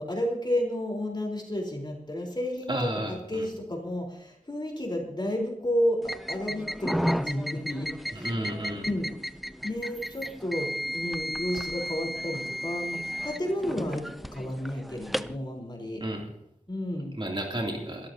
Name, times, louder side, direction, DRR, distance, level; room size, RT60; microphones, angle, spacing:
voice 1, 0.0-6.0 6.3-8.3 8.7-9.1 9.6-16.0 16.7-17.2, equal, 35° left, 1 dB, 3.8 m, -32 dB
voice 2, 2.7-3.5 8.1-8.9 16.0-16.3 17.2-18.1, right 1 dB, 40° right, 0 dB, 2.7 m, -32 dB
sound 1, 6.0-15.4, equal, ahead, 0.5 m, -34 dB
27.0 x 13.5 x 2.8 m, 0.75 s
wide cardioid pair, 60°, 13 cm